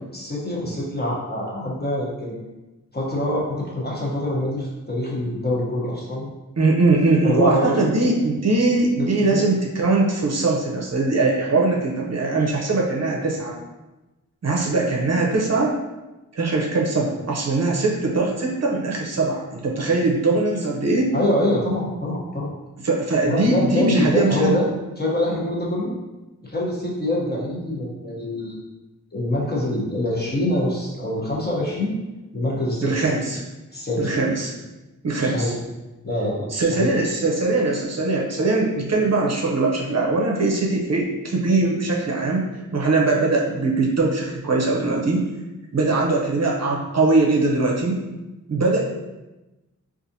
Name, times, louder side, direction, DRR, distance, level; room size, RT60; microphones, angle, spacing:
voice 1, 0.1-2.4 2.9-6.2 7.2-7.7 9.3-9.7 21.1-22.5 23.2-24.6 25.0-25.9 26.4-28.6 29.1-32.0 32.3-33.1 33.7-34.3 35.2-35.5 36.0-36.9, left 1 dB, 30° left, -4 dB, 0.9 m, -25 dB
voice 2, 6.6-13.6 14.4-15.8 16.3-21.1 22.8-24.6 32.8-33.4 34.0-34.5 35.0-35.5 36.5-45.3 45.7-48.0 48.5-48.8, right 3 dB, 50° right, -2 dB, 0.6 m, -21 dB
4.0 x 2.5 x 2.7 m, 1.1 s
wide cardioid pair, 85°, 33 cm